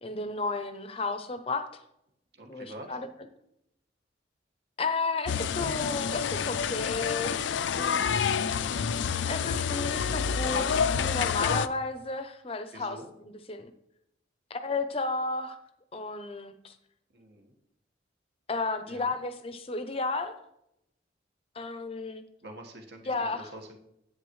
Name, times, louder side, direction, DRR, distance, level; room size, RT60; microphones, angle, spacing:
voice 1, 0.0-1.6 2.5-3.1 4.8-8.0 9.3-13.0 13.5-13.7 14.5-15.6 15.9-16.7 18.5-20.3 21.5-22.2 23.1-23.5, left 3 dB, 30° left, 9 dB, 0.6 m, -33 dB
voice 2, 2.3-3.0 12.7-13.1 17.1-17.5 18.8-19.1 22.4-23.8, right 1 dB, 60° right, 2 dB, 1.5 m, -46 dB
sound 1, 5.3-11.7, left 7 dB, 80° left, 0.4 m, -28 dB
10.0 x 8.2 x 3.1 m, 0.80 s
head